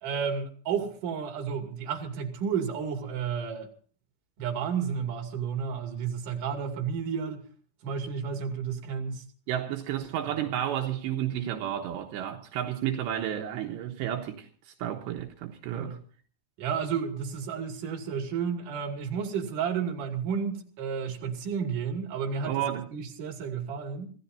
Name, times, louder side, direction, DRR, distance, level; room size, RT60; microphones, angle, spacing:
voice 1, 0.0-3.7 4.4-7.4 7.8-9.2 10.2-10.4 15.7-16.0 16.6-22.5 22.9-24.1, right 6 dB, 50° right, 3.7 m, -32 dB
voice 2, 9.5-16.0 22.4-22.9, right 11 dB, 80° right, 3.3 m, -32 dB
26.0 x 16.5 x 2.7 m
omnidirectional pair, 5.1 m